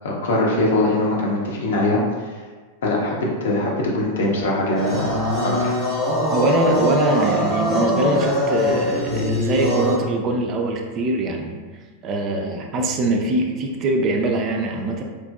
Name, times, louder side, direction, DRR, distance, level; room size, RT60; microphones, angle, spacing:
voice 1, 0.0-2.0 2.8-5.1 5.4-5.7, left 2 dB, 60° left, -3 dB, 0.6 m, -22 dB
sound 1, 4.7-10.0, equal, 20° left, 0.8 m, -22 dB
voice 2, 6.3-11.6 12.0-15.0, right 2 dB, 35° right, 2 dB, 0.3 m, -22 dB
2.9 x 2.5 x 2.3 m, 1.4 s
figure-of-eight pair, 90°, 0 cm